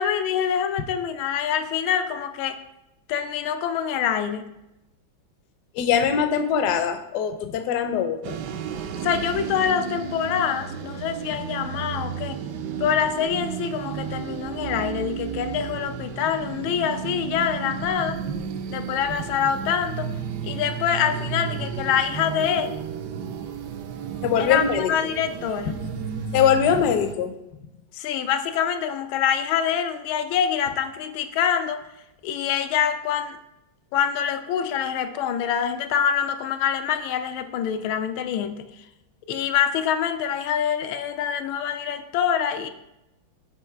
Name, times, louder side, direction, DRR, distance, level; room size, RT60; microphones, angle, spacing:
voice 1, 0.0-2.6 3.1-4.5 9.0-12.4 12.8-18.2 18.7-20.1 20.4-22.8 24.4-25.8 27.9-31.8 32.2-33.4 33.9-38.7 39.3-42.7, left 8 dB, 85° left, 9 dB, 1.4 m, -25 dB
voice 2, 5.7-8.4 24.2-24.9 26.3-27.3, left 8 dB, 70° left, 8 dB, 1.0 m, -22 dB
sound 1, 8.2-27.1, right 7 dB, 75° right, 1.0 m, -33 dB
8.1 x 3.1 x 4.5 m, 0.90 s
omnidirectional pair, 2.2 m